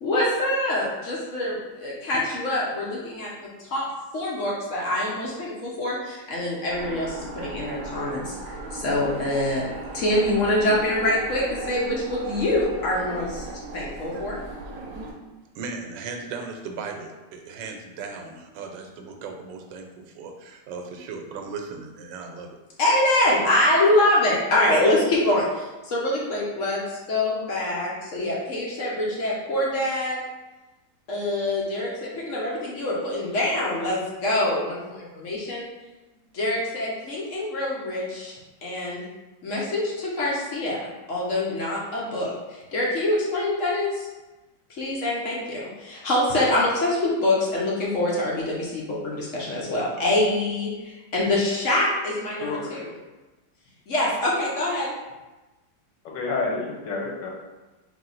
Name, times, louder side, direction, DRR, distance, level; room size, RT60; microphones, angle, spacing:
voice 1, 0.0-1.5 1.8-3.3 3.7-3.8 4.1-6.0 6.3-7.1 7.4-8.2 8.8-9.6 9.9-13.3 13.7-14.4 22.8-25.4 25.9-26.8 27.1-30.2 31.1-31.9 32.3-34.8 35.2-35.6 36.4-38.3 38.6-39.0 39.4-39.8 40.2-40.8 41.1-42.3 42.7-43.9 44.8-45.6 45.9-50.7 51.1-52.9 53.9-54.9, left 1 dB, 55° left, -4 dB, 0.9 m, -24 dB
sound 1, 6.7-15.1, right 2 dB, 65° right, 1.0 m, -37 dB
voice 2, 15.5-22.6, right 4 dB, 85° right, 4 dB, 1.3 m, -37 dB
voice 3, 52.2-52.8 56.0-57.3, left 3 dB, 80° left, -1 dB, 1.4 m, -29 dB
3.5 x 2.7 x 3.8 m, 1.1 s
omnidirectional pair, 1.9 m